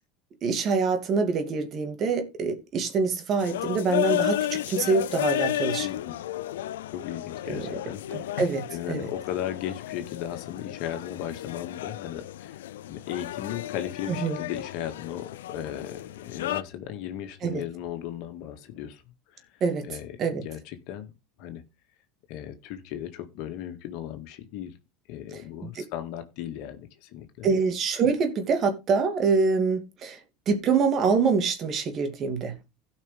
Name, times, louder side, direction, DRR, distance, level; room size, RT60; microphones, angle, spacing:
voice 1, 0.4-5.9 7.5-7.6 8.1-9.0 14.1-14.4 17.4-17.6 19.6-19.9 20.2-20.4 25.6-25.7 27.4-30.2 30.5-32.5, right 5 dB, 45° right, 2.6 m, -25 dB
sound 1, 3.4-16.6, left 13 dB, 85° left, 0.5 m, -33 dB
voice 2, 5.8-6.2 6.9-8.4 8.7-19.0 19.3-21.1 21.4-21.6 22.3-24.7 25.1-27.6, left 11 dB, 65° left, 2.0 m, -36 dB
16.5 x 5.8 x 3.5 m
hypercardioid pair, 95°, 0 cm